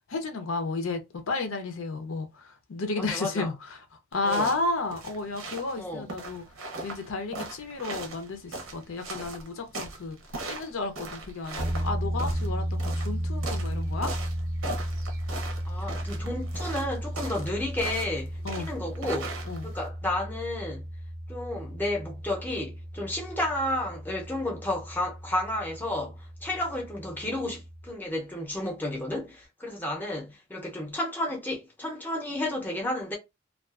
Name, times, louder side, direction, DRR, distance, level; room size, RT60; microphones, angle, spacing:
voice 1, 0.1-1.0 1.3-3.8 4.1-6.4 6.8-10.2 10.5-14.1 15.8-15.9 18.4-18.7 19.4-19.7, left 3 dB, 90° left, 0.6 m, -32 dB
voice 2, 3.0-3.5 4.2-4.5 5.8-6.1 15.6-20.9 21.3-33.2, left 1 dB, 10° left, 0.5 m, -32 dB
sound 1, 4.1-19.9, right 2 dB, 90° right, 0.7 m, -39 dB
sound 2, 11.6-27.9, equal, 45° right, 0.5 m, -34 dB
2.4 x 2.3 x 2.3 m
head